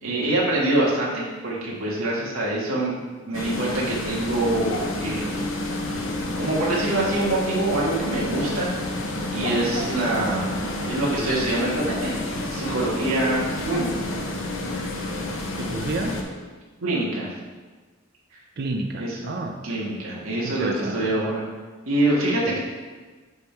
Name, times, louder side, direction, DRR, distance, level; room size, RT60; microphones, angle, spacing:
voice 1, 0.0-3.0 3.2-5.4 6.4-8.7 9.3-12.1 12.5-13.4 13.7-13.9 16.8-17.3 19.0-19.3 19.6-21.4 21.8-22.6, right 1 dB, 80° right, -5 dB, 1.5 m, -25 dB
sound 1, 3.3-16.2, left 1 dB, 70° left, 0.9 m, -29 dB
voice 2, 15.6-16.2 18.6-19.6 20.4-21.1, right 2 dB, 50° right, 3 dB, 0.5 m, -29 dB
8.0 x 3.5 x 4.5 m, 1.3 s
head